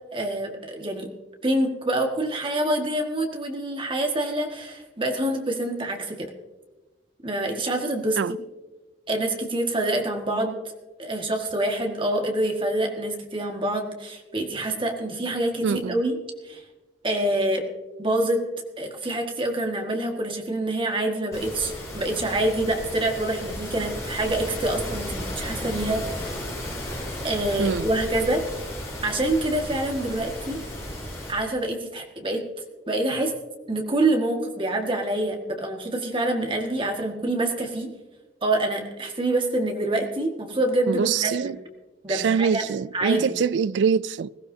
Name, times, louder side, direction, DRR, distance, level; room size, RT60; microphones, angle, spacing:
voice 1, 0.1-1.1 1.4-6.3 7.2-8.2 9.1-10.6 11.0-16.2 16.4-16.6 17.0-17.6 18.0-18.4 18.8-26.2 27.2-28.6 29.0-30.6 31.3-32.4 32.9-33.3 33.7-37.9 38.4-41.5 42.0-43.3, right 1 dB, 30° right, 1.7 m, -26 dB
voice 2, 15.6-15.9 27.6-27.9 40.9-41.6 42.1-44.3, right 6 dB, 75° right, 0.3 m, -24 dB
sound 1, 21.3-31.3, left 1 dB, 15° left, 6.2 m, -34 dB
20.5 x 15.5 x 2.8 m
head